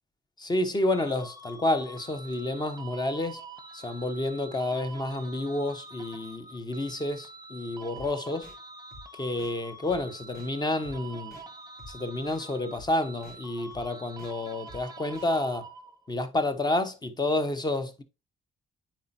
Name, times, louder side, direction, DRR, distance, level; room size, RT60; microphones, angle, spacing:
voice 1, 0.4-3.4 3.7-8.5 9.1-11.4 11.9-15.7 16.1-18.0, left 2 dB, 20° left, 1.1 m, -30 dB
sound 1, 0.9-16.1, right 3 dB, 20° right, 0.9 m, -46 dB
sound 2, 7.9-8.1 8.4-8.6 8.9-9.0 9.4-9.5 9.9-10.0 10.3-10.5 10.8-11.0 11.3-11.4 11.8-11.9 12.3-12.4 12.7-12.9 13.2-13.4 13.7-13.8 14.2-14.3 14.7-14.8 15.1-15.3, left 1 dB, 50° left, 4.4 m, -48 dB
9.3 x 4.5 x 2.8 m
cardioid pair, 90°, 20 cm